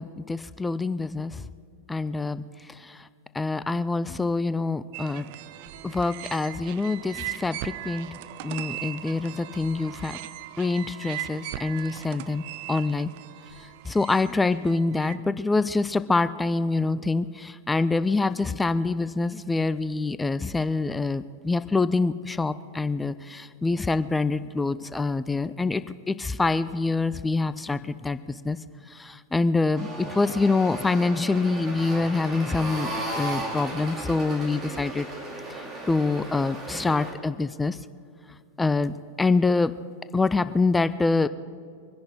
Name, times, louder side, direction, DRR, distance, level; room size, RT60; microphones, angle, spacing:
voice 1, 0.0-1.4 1.9-2.4 2.7-3.1 3.3-5.3 5.8-8.1 8.4-10.2 10.6-13.1 13.8-28.6 28.9-35.1 35.6-37.8 38.6-39.7 40.1-41.3, left 3 dB, 10° left, 14 dB, 0.4 m, -26 dB
sound 1, 4.9-15.2, right 14 dB, 50° right, 0.5 m, -39 dB
sound 2, 29.8-37.1, right 2 dB, 25° right, 2.9 m, -35 dB
24.5 x 10.5 x 4.5 m, 2.3 s
figure-of-eight pair, 90°, 0 cm